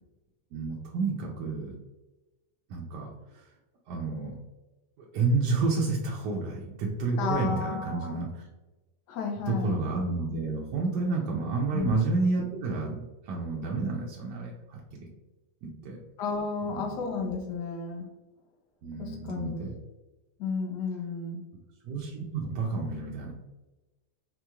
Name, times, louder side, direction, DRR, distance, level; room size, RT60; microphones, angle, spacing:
voice 1, 0.5-1.7 2.7-3.5 3.9-4.4 5.1-8.5 9.5-15.1 15.6-16.0 16.7-17.0 18.8-19.7 21.8-23.3, right 3 dB, 90° right, -2 dB, 1.2 m, -30 dB
voice 2, 7.2-8.1 9.1-9.8 11.7-11.9 16.2-18.0 19.0-19.7 20.4-21.4, left 4 dB, 85° left, 2 dB, 1.3 m, -32 dB
4.1 x 2.9 x 2.3 m, 1.1 s
omnidirectional pair, 1.8 m